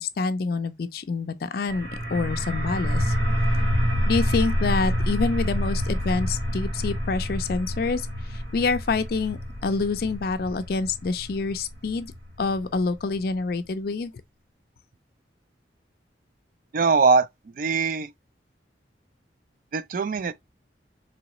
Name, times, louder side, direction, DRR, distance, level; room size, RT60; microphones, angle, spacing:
voice 1, 0.0-3.2 4.1-12.1 12.4-14.1, left 4 dB, 55° left, 0.4 m, -27 dB
sound 1, 1.7-13.2, equal, 80° right, 1.6 m, -27 dB
voice 2, 16.7-17.3 17.6-18.1 19.7-20.3, right 4 dB, 45° right, 0.3 m, -21 dB
3.9 x 3.0 x 2.9 m
head